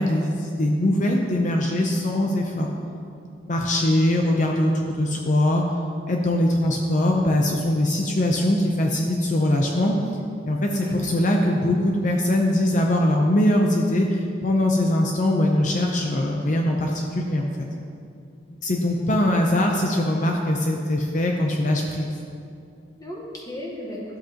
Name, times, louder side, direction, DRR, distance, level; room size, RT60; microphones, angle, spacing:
voice 1, 0.0-2.7 3.4-5.6 6.1-9.9 10.5-17.5 18.5-22.1, left 1 dB, 45° left, 1 dB, 0.6 m, -22 dB
voice 2, 10.7-11.1 23.0-24.0, equal, 20° left, -2 dB, 1.2 m, -34 dB
12.5 x 7.9 x 2.9 m, 2.5 s
head